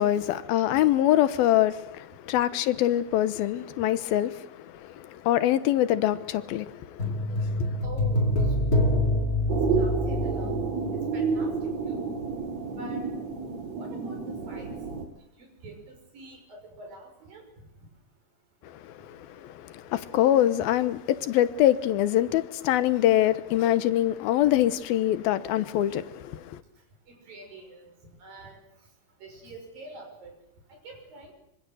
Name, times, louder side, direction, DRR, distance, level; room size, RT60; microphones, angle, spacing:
voice 1, 0.0-4.3 5.2-6.8 7.5-7.7 19.9-26.4, left 12 dB, 85° left, 2.9 m, -24 dB
sound 1, 7.0-11.5 11.7-11.8, left 1 dB, 25° left, 3.2 m, -26 dB
voice 2, 7.8-8.6 9.4-10.5 10.9-11.5 11.9-12.1 12.7-13.1 13.7-14.7 15.4-17.4 27.1-27.9 28.2-28.6 29.2-30.4 30.7-31.3, right 3 dB, 70° right, 7.6 m, -45 dB
sound 2, 9.5-15.0, right 5 dB, 50° right, 3.6 m, -30 dB
25.0 x 25.0 x 7.9 m
omnidirectional pair, 4.2 m